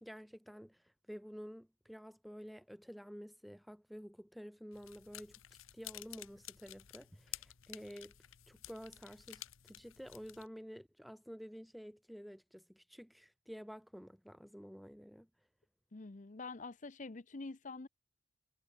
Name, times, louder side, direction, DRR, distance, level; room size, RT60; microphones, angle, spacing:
voice 1, 0.0-8.1 8.5-15.3, equal, ahead, 0.6 m, -51 dB
sound 1, 4.7-10.5, left 14 dB, 75° left, 0.9 m, -52 dB
voice 2, 15.9-17.9, left 3 dB, 35° left, 0.7 m, -46 dB
head